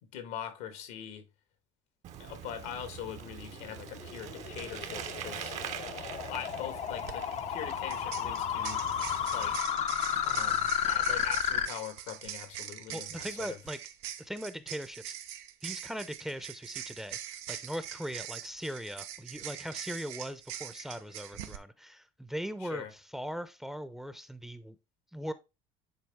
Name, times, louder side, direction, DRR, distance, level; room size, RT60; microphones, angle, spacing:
voice 1, 0.0-1.2 2.2-5.7 6.1-8.8 9.3-9.6 10.2-13.6 22.6-22.9, left 9 dB, 80° left, 1.9 m, -42 dB
Bicycle, 2.0-9.6, right 9 dB, 55° right, 1.1 m, -43 dB
sound 1, 3.6-11.7, left 9 dB, 50° left, 0.8 m, -32 dB
sound 2, 6.9-7.1 7.9-21.6, right 11 dB, 85° right, 0.9 m, -43 dB
voice 2, 12.9-13.8 14.2-15.1 15.6-24.8 25.1-25.3, equal, 5° right, 0.8 m, -40 dB
9.5 x 3.9 x 3.6 m
supercardioid pair, 95°, 14 cm